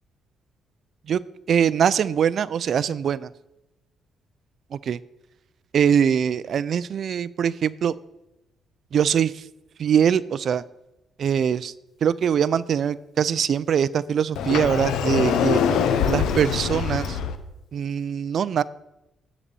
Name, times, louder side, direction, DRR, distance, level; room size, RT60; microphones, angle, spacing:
voice 1, 1.5-3.3 4.7-5.0 5.7-8.0 8.9-9.4 9.8-10.6 11.2-11.7 12.0-15.6 16.1-17.2 17.7-18.6, right 8 dB, 60° right, 18 dB, 0.3 m, -22 dB
Sliding door, 14.4-17.4, left 7 dB, 85° left, 0.8 m, -23 dB
10.0 x 4.1 x 6.9 m, 0.91 s
cardioid pair, 90°, 0 cm